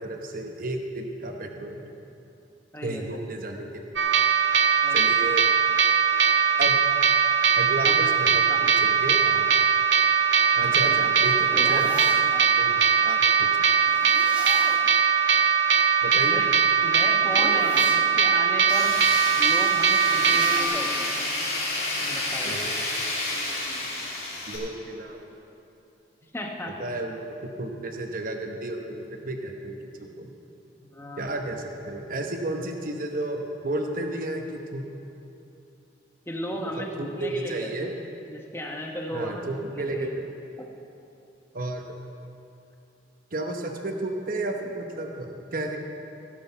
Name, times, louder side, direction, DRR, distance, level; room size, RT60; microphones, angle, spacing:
voice 1, 0.0-1.9 2.8-4.0 4.9-5.5 6.6-6.8 7.6-9.4 10.6-12.2 12.5-13.6 16.0-16.4 22.4-22.8 24.5-25.2 26.8-27.2 27.6-30.3 31.2-34.8 36.6-36.7 37.0-37.9 39.1-40.3 41.5-42.0 43.3-45.8, right 2 dB, 50° right, 3 dB, 0.9 m, -32 dB
voice 2, 2.7-3.2 4.8-5.3 7.8-8.1 8.5-8.7 10.8-11.1 11.8-12.0 12.3-12.5 16.3-16.5 16.8-19.0 19.4-21.1 22.0-22.6 26.3-26.8 30.8-31.3 36.3-37.7 38.3-39.5 39.7-40.1 40.6-40.7, equal, 15° left, 1 dB, 1.0 m, -35 dB
sound 1, 4.0-20.6, right 6 dB, 80° right, 0.7 m, -21 dB
sound 2, 10.5-12.3 13.8-15.0 16.4-18.1 19.8-21.0, right 1 dB, 10° right, 1.0 m, -37 dB
Tools, 18.7-24.6, left 2 dB, 55° left, 3.0 m, -30 dB
16.5 x 7.8 x 5.7 m, 2.8 s
head